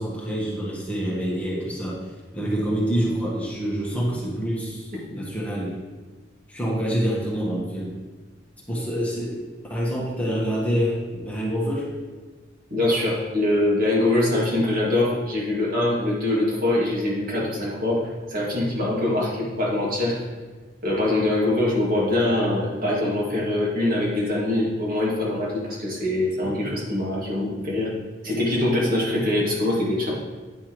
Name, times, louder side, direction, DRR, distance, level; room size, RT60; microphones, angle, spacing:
voice 1, 0.0-1.9 2.3-5.7 6.5-7.9 8.7-9.4 9.7-11.9, equal, 10° left, -5 dB, 1.4 m, -26 dB
voice 2, 12.7-20.2 20.8-27.9 28.2-30.1, left 1 dB, 55° right, -5 dB, 2.1 m, -23 dB
9.2 x 5.9 x 3.0 m, 1.3 s
head